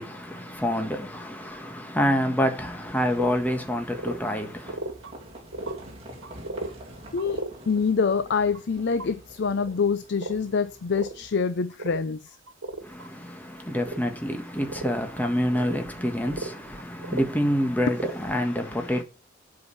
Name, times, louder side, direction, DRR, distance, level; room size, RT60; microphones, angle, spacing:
voice 1, 0.0-4.8 12.8-19.0, equal, 10° left, 1.6 m, -27 dB
Livestock farm animals working animals, 2.6-11.3, right 1 dB, 30° right, 2.9 m, -47 dB
sound 1, 3.2-3.3 3.6-3.7 3.9-5.1 5.4-5.8 6.2-6.7 7.2-7.5 8.5-9.1 9.6-9.8 10.2-10.4 11.0-11.3 11.7-12.0 12.5-13.1 13.7-14.0 14.3-14.4 14.7-15.2 15.5-17.3 17.8-18.4, right 2 dB, 80° right, 1.6 m, -35 dB
voice 2, 7.1-12.4, left 5 dB, 60° left, 0.5 m, -26 dB
8.0 x 5.0 x 7.0 m
head